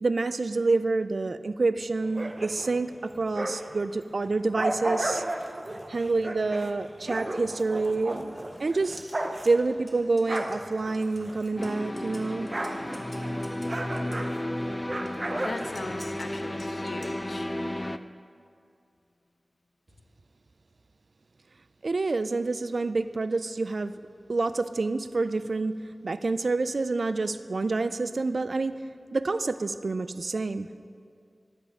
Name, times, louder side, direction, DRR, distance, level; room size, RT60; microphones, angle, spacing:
voice 1, 0.0-5.2 5.9-9.0 9.4-12.5 21.8-23.9 24.3-25.8 26.0-28.7 29.1-30.7, right 3 dB, 75° right, 12 dB, 0.3 m, -27 dB
Big dogs grunting, 2.0-3.8 4.2-11.8 12.1-16.4, right 1 dB, 45° right, 0.6 m, -35 dB
sound 1, 8.1-14.3 15.0-17.6, equal, ahead, 1.4 m, -52 dB
sound 2, 11.6-18.0, left 1 dB, 25° left, 0.4 m, -33 dB
voice 2, 15.4-17.6, left 2 dB, 75° left, 7 dB, 0.6 m, -39 dB
12.0 x 8.1 x 3.5 m, 2.4 s
wide cardioid pair, 50°, 0 cm